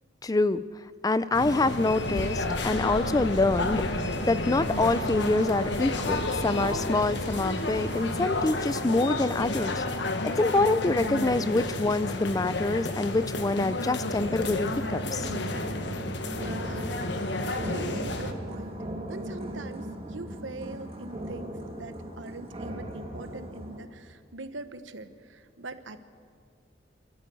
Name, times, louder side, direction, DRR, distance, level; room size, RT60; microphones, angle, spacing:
voice 1, 0.2-0.6 1.0-9.8 10.2-15.3, left 2 dB, 20° left, 15 dB, 0.4 m, -26 dB
sound 1, 1.3-18.3, left 2 dB, 65° left, 1.3 m, -31 dB
sound 2, 2.0-8.5, equal, 65° right, 2.3 m, -39 dB
sound 3, 14.1-23.8, right 1 dB, 30° right, 1.9 m, -38 dB
voice 2, 16.3-17.0 17.4-26.1, right 2 dB, 80° right, 11 dB, 1.1 m, -42 dB
27.0 x 13.0 x 8.3 m, 2.2 s
head